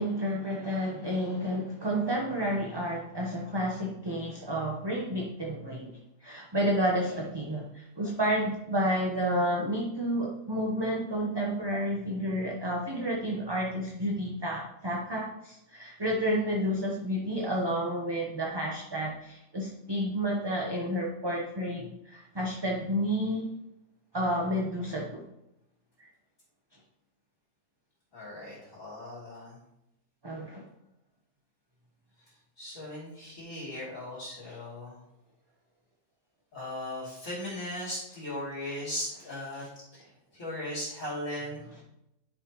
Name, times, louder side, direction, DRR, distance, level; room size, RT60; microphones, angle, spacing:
voice 1, 0.0-23.5 24.1-25.2 26.0-26.1 30.2-30.6 34.4-34.6, equal, 20° right, -1 dB, 0.8 m, -30 dB
voice 2, 28.1-29.6 32.6-35.0 36.5-41.7, left 1 dB, 60° left, -8 dB, 3.2 m, -38 dB
10.5 x 5.7 x 3.0 m, 0.85 s
omnidirectional pair, 1.5 m